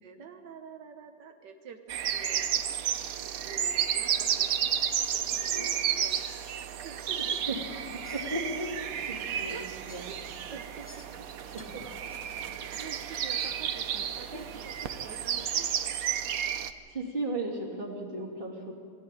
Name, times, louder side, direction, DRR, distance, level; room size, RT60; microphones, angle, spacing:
voice 1, 0.0-2.5 3.1-4.7 5.1-6.2 6.8-7.4 9.1-9.7 10.1-11.1 12.4-15.7, right 6 dB, 85° right, 5 dB, 1.7 m, -47 dB
sound 1, 1.9-16.7, right 9 dB, 60° right, 1.1 m, -32 dB
sound 2, 7.5-15.5, left 1 dB, 10° left, 0.9 m, -52 dB
voice 2, 7.9-8.7 9.1-9.6 9.9-10.0 11.5-11.8 16.9-18.7, right 2 dB, 30° right, 1 dB, 2.9 m, -35 dB
21.5 x 14.0 x 9.1 m, 2.2 s
omnidirectional pair, 1.8 m